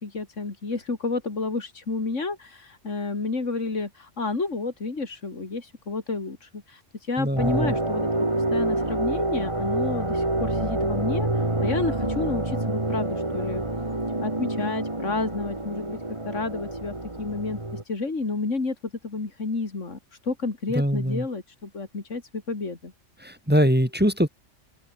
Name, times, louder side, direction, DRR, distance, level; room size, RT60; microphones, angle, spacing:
voice 1, 0.0-13.6 14.2-16.0 16.2-17.6 17.8-18.7 19.0-22.9, left 3 dB, 80° left, 3.3 m, -30 dB
voice 2, 7.2-7.8 20.7-21.3 23.2-24.3, equal, 10° right, 2.7 m, -22 dB
sound 1, 7.4-17.8, right 2 dB, 25° right, 2.7 m, -27 dB
open air
omnidirectional pair, 1.3 m